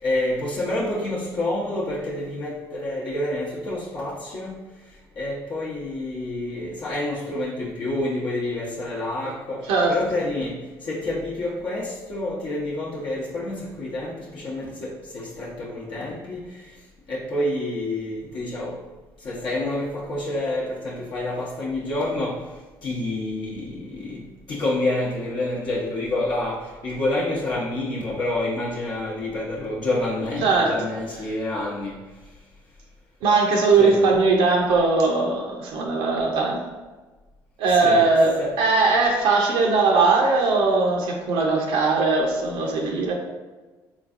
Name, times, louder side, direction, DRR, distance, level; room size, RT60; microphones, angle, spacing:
voice 1, 0.0-4.6 5.2-16.8 17.1-18.8 19.2-22.4 22.8-32.0 33.8-34.0 37.7-38.1 38.4-38.5, left 1 dB, 60° left, -6 dB, 0.8 m, -28 dB
voice 2, 30.4-30.8 33.2-36.6 37.6-43.1, right 3 dB, 80° right, 0 dB, 0.5 m, -20 dB
3.5 x 3.0 x 2.4 m, 1.2 s
supercardioid pair, 75°, 9 cm